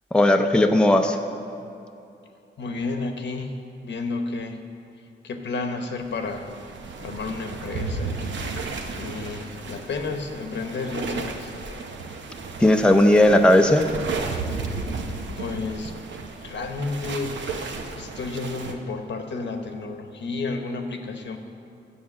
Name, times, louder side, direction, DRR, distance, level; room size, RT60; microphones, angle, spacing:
voice 1, 0.1-1.2 12.6-13.9, left 1 dB, 5° left, 5 dB, 0.5 m, -16 dB
voice 2, 2.6-3.6 3.8-4.6 5.2-6.6 7.0-8.3 8.6-11.5 15.4-15.9 16.4-17.4 18.0-21.4, left 3 dB, 70° left, 5 dB, 1.0 m, -31 dB
sound 1, 6.1-18.7, right 4 dB, 80° right, 0.9 m, -33 dB
8.5 x 7.1 x 7.4 m, 2.7 s
wide cardioid pair, 100°, 19 cm